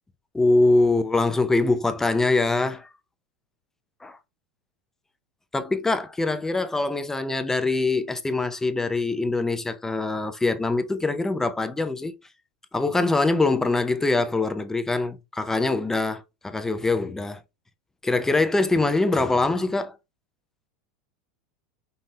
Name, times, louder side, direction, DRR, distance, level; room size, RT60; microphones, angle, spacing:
voice 1, 0.3-2.9 4.0-4.2 5.5-12.1 12.7-17.4 18.0-20.0, left 3 dB, 10° left, 0.6 m, -23 dB
5.4 x 2.7 x 3.2 m
supercardioid pair, 130°, 5 cm